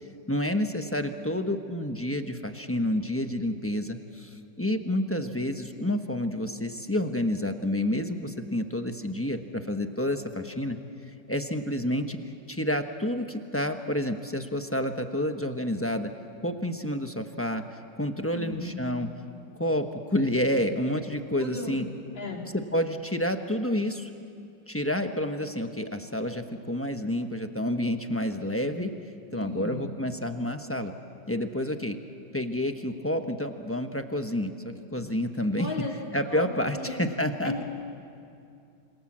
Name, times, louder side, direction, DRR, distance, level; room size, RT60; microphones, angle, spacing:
voice 1, 0.3-10.8 11.3-12.2 12.5-16.1 16.4-17.6 18.0-19.1 19.6-21.9 22.5-24.1 24.7-28.9 29.3-30.9 31.3-32.0 32.3-35.7 36.1-37.5, left 1 dB, 10° left, 6 dB, 0.7 m, -29 dB
voice 2, 18.3-18.8 21.4-21.8 22.2-22.4 29.3-29.9 35.6-35.9 36.2-36.5 36.7-36.9 37.4-37.6, left 3 dB, 80° left, 0 dB, 3.9 m, -35 dB
27.0 x 26.5 x 7.5 m, 2.5 s
omnidirectional pair, 2.0 m